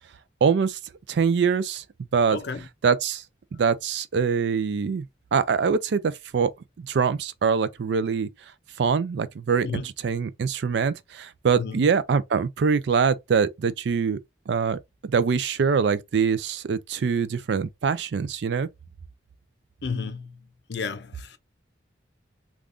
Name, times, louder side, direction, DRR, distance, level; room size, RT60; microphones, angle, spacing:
voice 1, 0.4-0.8 1.1-1.8 2.1-2.4 2.8-3.2 3.6-5.0 5.3-6.5 6.8-8.3 8.8-14.2 14.5-18.7, right 6 dB, 70° right, 0.4 m, -24 dB
voice 2, 2.3-2.7 3.5-3.6 9.6-9.9 11.6-11.9 19.8-21.4, left 5 dB, 65° left, 0.5 m, -33 dB
2.5 x 2.4 x 3.4 m
head